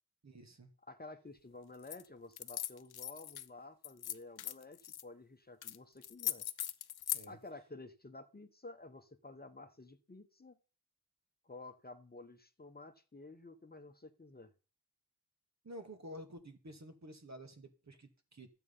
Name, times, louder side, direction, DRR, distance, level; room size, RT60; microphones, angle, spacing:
voice 1, 0.2-0.7 7.1-7.4 15.6-18.5, equal, 45° right, 6 dB, 2.2 m, -51 dB
voice 2, 0.9-6.5 7.3-10.6 11.4-14.5, left 2 dB, 25° left, 8 dB, 1.1 m, -52 dB
sound 1, 1.8-2.0 2.3-3.5 3.8-5.0 5.6-5.8 6.0-7.2, left 11 dB, 85° left, 0.7 m, -39 dB
12.0 x 8.0 x 5.5 m, 0.38 s
cardioid pair, 60°, 37 cm